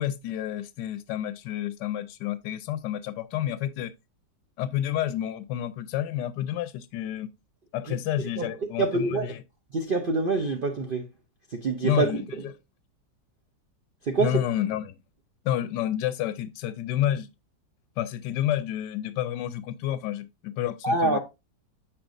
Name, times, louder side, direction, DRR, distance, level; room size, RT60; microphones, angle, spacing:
voice 1, 0.0-3.9 4.6-7.3 7.7-9.3 11.8-12.2 14.2-15.0 15.4-17.3 18.0-21.2, left 11 dB, 75° left, 1.2 m, -29 dB
voice 2, 7.9-8.5 8.8-9.3 9.7-11.1 11.5-12.1 14.0-14.4 20.8-21.2, right 3 dB, 60° right, 0.5 m, -26 dB
7.3 x 5.7 x 2.5 m
omnidirectional pair, 2.0 m